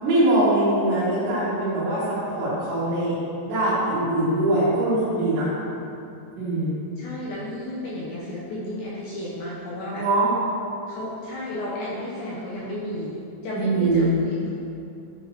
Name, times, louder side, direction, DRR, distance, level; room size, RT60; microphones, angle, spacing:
voice 1, 0.0-3.2 3.5-5.5 6.4-6.8 10.0-10.3 13.6-14.2, right 1 dB, 75° right, -14 dB, 4.6 m, -22 dB
voice 2, 5.4-5.7 7.0-10.1 10.9-14.5, left 1 dB, 75° left, -6 dB, 2.2 m, -33 dB
11.0 x 8.4 x 2.9 m, 2.7 s
omnidirectional pair, 5.2 m